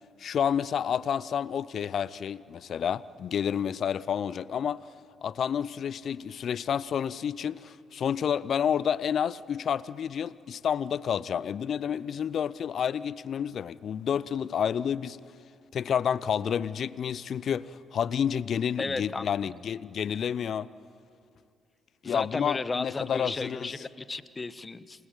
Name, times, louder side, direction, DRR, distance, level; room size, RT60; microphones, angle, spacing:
voice 1, 0.2-4.8 5.2-15.2 15.7-20.7 22.0-23.7, left 8 dB, 55° left, 0.6 m, -30 dB
voice 2, 18.8-19.5 22.0-25.1, left 3 dB, 30° left, 1.1 m, -34 dB
28.0 x 20.5 x 8.9 m
hypercardioid pair, 45°, 0 cm